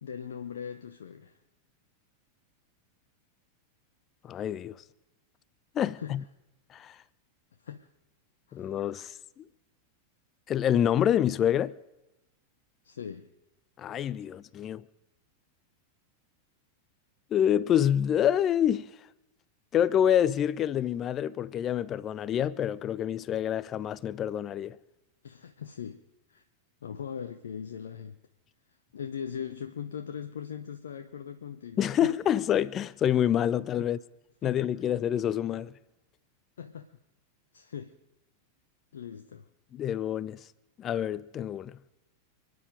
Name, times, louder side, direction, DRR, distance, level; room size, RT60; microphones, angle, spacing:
voice 1, 0.0-1.4 6.0-6.1 7.6-7.9 8.5-8.7 12.8-13.3 25.2-26.0 26.3-26.4 26.8-28.2 28.9-32.1 33.8-33.9 34.4-34.7 36.6-36.9 37.5-37.9 38.9-39.4, left 8 dB, 65° left, 0.9 m, -40 dB
voice 2, 4.2-4.8 5.7-6.2 6.7-7.0 8.5-9.4 10.5-11.7 13.8-14.8 17.3-18.9 19.7-24.8 31.8-34.0 34.4-35.7 39.7-40.4 40.8-41.8, left 10 dB, 30° left, 0.6 m, -27 dB
28.0 x 9.9 x 5.2 m
figure-of-eight pair, 90°, 0 cm